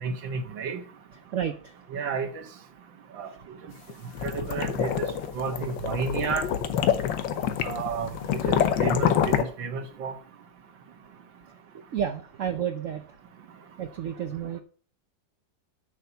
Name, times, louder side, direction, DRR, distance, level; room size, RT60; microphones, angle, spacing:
voice 1, 0.0-0.8 1.9-2.4 3.2-3.3 4.2-4.9 5.4-6.5 7.6-8.1 8.5-10.1, right 5 dB, 85° right, 2.0 m, -31 dB
voice 2, 1.3-1.8 11.9-13.2 13.8-14.6, right 9 dB, 55° right, 0.9 m, -31 dB
sound 1, 3.9-9.4, left 9 dB, 85° left, 1.6 m, -26 dB
8.1 x 6.4 x 6.9 m
omnidirectional pair, 2.0 m